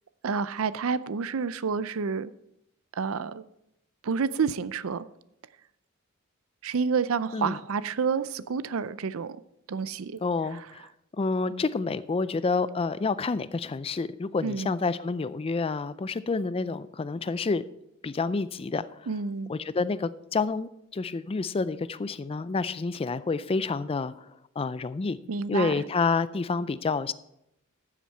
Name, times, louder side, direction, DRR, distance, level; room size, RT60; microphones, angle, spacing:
voice 1, 0.2-2.3 2.9-3.4 4.0-5.0 6.6-9.4 9.7-10.2 10.5-10.7 14.4-14.7 19.1-19.5 25.3-25.7, right 5 dB, 70° right, 16 dB, 0.5 m, -29 dB
voice 2, 10.2-10.9 11.1-17.6 18.0-19.1 19.5-24.3 24.6-25.2 25.5-27.1, left 4 dB, 25° left, 16 dB, 0.4 m, -29 dB
13.5 x 7.5 x 4.4 m, 0.80 s
head